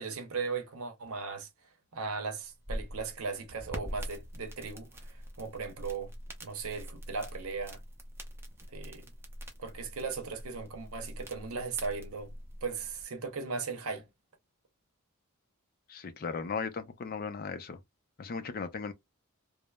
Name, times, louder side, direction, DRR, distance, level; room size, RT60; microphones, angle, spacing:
voice 1, 0.0-1.5 1.9-6.1 6.4-7.8 8.7-9.1 9.6-12.3 12.6-14.1, right 4 dB, 70° right, 0.7 m, -37 dB
sound 1, 2.4-13.0, equal, 10° right, 0.6 m, -44 dB
voice 2, 15.9-17.8 18.2-18.9, left 5 dB, 45° left, 0.4 m, -37 dB
3.1 x 2.0 x 2.2 m
head